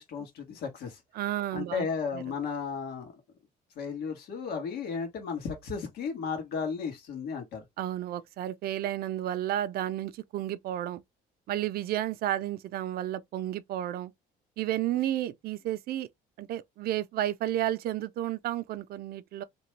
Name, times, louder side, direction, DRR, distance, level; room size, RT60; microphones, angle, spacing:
voice 1, 0.0-1.0 1.5-3.1 3.8-7.6, left 5 dB, 70° left, 1.4 m, -34 dB
voice 2, 1.1-1.9 2.1-2.2 7.8-11.0 11.5-14.1 14.6-16.1 16.4-19.4, right 13 dB, 65° right, 0.5 m, -32 dB
2.9 x 2.2 x 3.1 m
cardioid pair, 110°, 17 cm